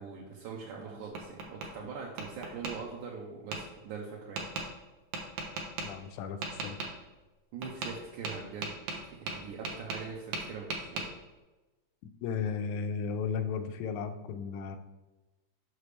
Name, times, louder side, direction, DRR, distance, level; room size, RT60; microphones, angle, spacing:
voice 1, 0.0-4.4 7.5-8.8 9.0-11.1, right 5 dB, 90° right, -2 dB, 2.3 m, -42 dB
Tap, 0.7-1.7 2.2-2.7 3.5-3.6 4.4-4.7 5.1-5.9 6.4-6.9 7.6-8.0 8.2-10.1 10.3-11.1, right 3 dB, 65° right, 1.7 m, -36 dB
voice 2, 5.8-6.8 12.2-14.8, left 6 dB, 85° left, 8 dB, 2.0 m, -35 dB
6.7 x 6.0 x 3.3 m, 1.1 s
omnidirectional pair, 3.4 m